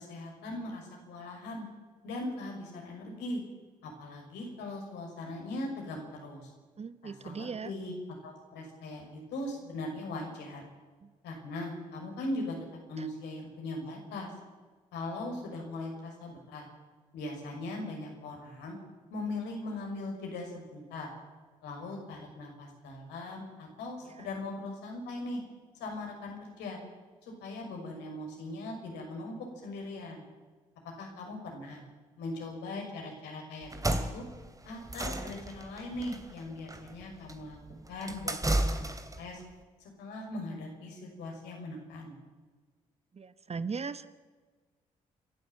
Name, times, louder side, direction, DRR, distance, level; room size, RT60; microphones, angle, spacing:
voice 1, 0.0-1.7 2.0-3.4 3.8-6.5 7.0-7.9 8.2-10.6 11.2-12.6 12.9-14.3 14.9-16.6 17.1-18.8 19.1-21.1 21.6-25.4 25.8-26.8 27.2-29.4 29.6-30.2 31.0-31.8 32.2-34.2 34.6-37.6 37.9-39.4 39.8-42.1, left 2 dB, 70° left, 1 dB, 6.1 m, -40 dB
voice 2, 6.8-7.7 13.0-13.1 24.2-24.3 43.1-44.1, right 5 dB, 35° right, 13 dB, 1.2 m, -38 dB
sound 1, 33.6-39.3, right 1 dB, 20° right, 2.8 m, -33 dB
28.0 x 12.0 x 9.1 m, 1.4 s
figure-of-eight pair, 40°, 18 cm